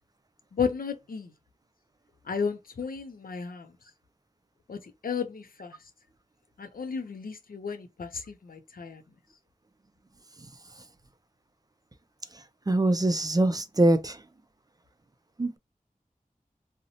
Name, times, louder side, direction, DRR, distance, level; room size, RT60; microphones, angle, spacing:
voice 1, 0.5-1.3 2.3-3.7 4.7-5.7 6.6-9.0, left 6 dB, 80° left, 0.4 m, -33 dB
voice 2, 12.7-14.2 15.4-15.6, right 1 dB, 25° right, 0.3 m, -23 dB
2.6 x 2.0 x 2.7 m
wide cardioid pair, 55°, 15 cm